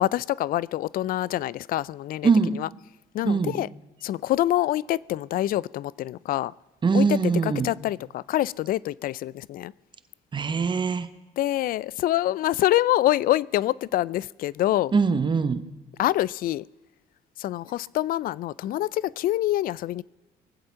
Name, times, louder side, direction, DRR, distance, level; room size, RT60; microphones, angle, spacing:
voice 1, 0.0-2.3 2.6-2.7 3.1-3.7 4.0-6.5 6.9-9.7 11.4-14.9 16.0-16.6 17.4-20.0, left 14 dB, 60° left, 0.4 m, -26 dB
voice 2, 2.2-2.6 3.2-3.6 6.8-7.7 10.3-11.1 14.9-15.6, right 5 dB, 30° right, 1.0 m, -22 dB
23.0 x 7.9 x 5.7 m
cardioid pair, 110°, 17 cm